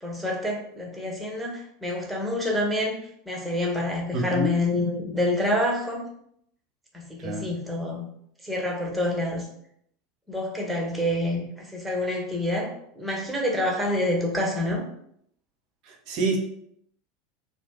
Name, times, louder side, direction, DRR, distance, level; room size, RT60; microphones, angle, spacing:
voice 1, 0.0-3.0 3.3-6.1 6.9-8.1 8.4-9.5 10.3-14.8, left 1 dB, 10° right, -2 dB, 0.8 m, -27 dB
voice 2, 4.1-4.5 7.2-7.5 15.8-16.4, right 3 dB, 50° right, 1 dB, 0.7 m, -27 dB
2.7 x 2.1 x 3.4 m, 0.70 s
figure-of-eight pair, 80°, 0 cm